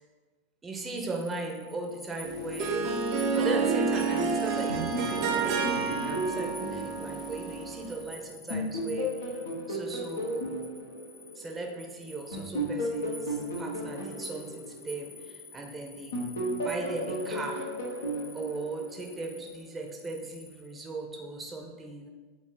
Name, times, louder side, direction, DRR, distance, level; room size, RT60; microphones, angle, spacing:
voice 1, 0.6-2.9 3.3-9.4 9.7-10.6 11.3-16.2 16.6-17.7 18.3-22.1, right 3 dB, 20° right, 1 dB, 0.7 m, -37 dB
sound 1, 1.0-20.8, left 2 dB, 10° left, 0.7 m, -50 dB
Harp, 2.2-8.0, right 4 dB, 55° right, 0.6 m, -29 dB
sound 2, 4.7-8.0 8.5-11.8 12.3-15.6 16.1-19.4, equal, 85° left, 1.0 m, -35 dB
4.4 x 2.7 x 4.0 m, 1.3 s
hypercardioid pair, 95°, 0 cm